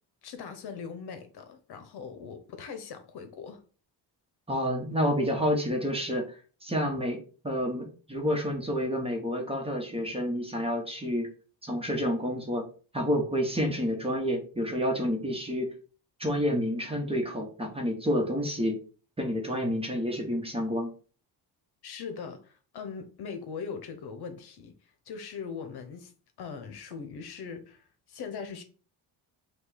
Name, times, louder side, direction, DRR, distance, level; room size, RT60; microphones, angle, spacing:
voice 1, 0.2-3.6 21.8-24.7 25.1-26.1 26.4-28.6, left 6 dB, 65° left, 0.9 m, -40 dB
voice 2, 4.5-6.2 6.6-7.2 7.4-11.3 11.6-12.7 12.9-15.7 16.2-18.8 19.2-20.9, equal, 15° right, 1.1 m, -29 dB
5.2 x 2.4 x 4.0 m
cardioid pair, 120°, 42 cm